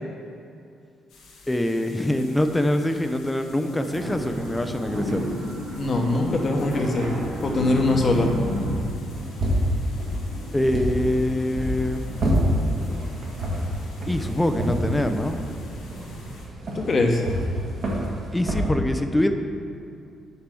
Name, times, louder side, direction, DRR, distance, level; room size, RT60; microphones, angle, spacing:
sound 1, 1.1-16.4, equal, 85° left, 1.9 m, -42 dB
voice 1, 1.5-5.3 10.5-12.2 14.1-15.4 18.3-19.3, left 1 dB, 10° left, 7 dB, 0.6 m, -24 dB
sound 2, 3.8-8.8, equal, 80° right, 1.8 m, -30 dB
voice 2, 5.8-7.1 7.4-8.3 16.7-17.2, left 2 dB, 45° left, 2 dB, 1.1 m, -22 dB
sound 3, 9.1-18.7, equal, 55° right, 1.8 m, -28 dB
6.9 x 4.8 x 6.8 m, 2.6 s
cardioid pair, 90°, 0 cm